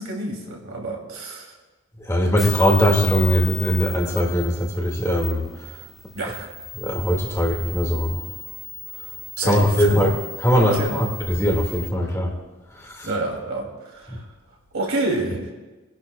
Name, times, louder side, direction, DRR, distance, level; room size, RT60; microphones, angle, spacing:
voice 1, 0.0-1.6 6.1-6.5 9.4-10.0 10.7-11.1 13.0-14.2 14.7-15.5, right 2 dB, 70° right, 0 dB, 2.8 m, -28 dB
voice 2, 2.0-5.8 6.7-8.3 9.4-10.1 10.4-12.4 12.8-13.1 14.1-14.2, equal, 15° left, 1 dB, 2.0 m, -21 dB
sound 1, 2.3-11.9, left 2 dB, ahead, 1.6 m, -37 dB
25.5 x 11.5 x 2.3 m, 1.2 s
head